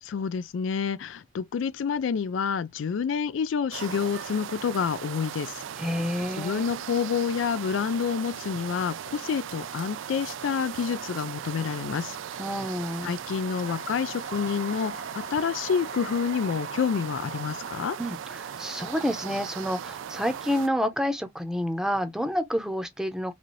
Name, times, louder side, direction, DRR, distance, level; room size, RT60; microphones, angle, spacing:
voice 1, 0.0-5.6 6.4-12.2 13.0-18.0, left 6 dB, 75° left, 0.4 m, -28 dB
sound 1, 3.7-20.7, right 8 dB, 75° right, 0.4 m, -38 dB
voice 2, 5.8-6.7 12.4-13.1 18.0-23.3, equal, 5° right, 0.7 m, -29 dB
Wind instrument woodwind instrument, 13.3-17.7, left 3 dB, 45° left, 1.1 m, -45 dB
4.1 x 2.6 x 3.1 m
head